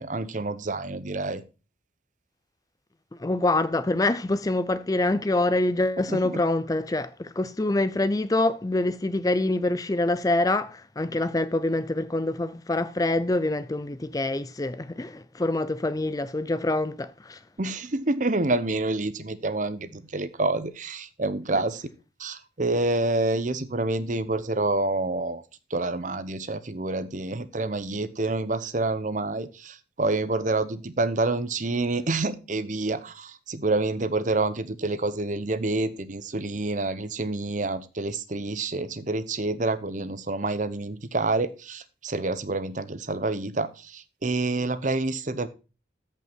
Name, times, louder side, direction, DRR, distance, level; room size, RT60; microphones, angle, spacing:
voice 1, 0.0-1.4 6.1-6.4 17.6-21.9 22.2-25.4 25.7-45.5, right 2 dB, 40° right, 0.8 m, -28 dB
voice 2, 3.2-17.4 21.5-21.6, left 2 dB, 20° left, 0.4 m, -25 dB
14.0 x 5.5 x 4.5 m
head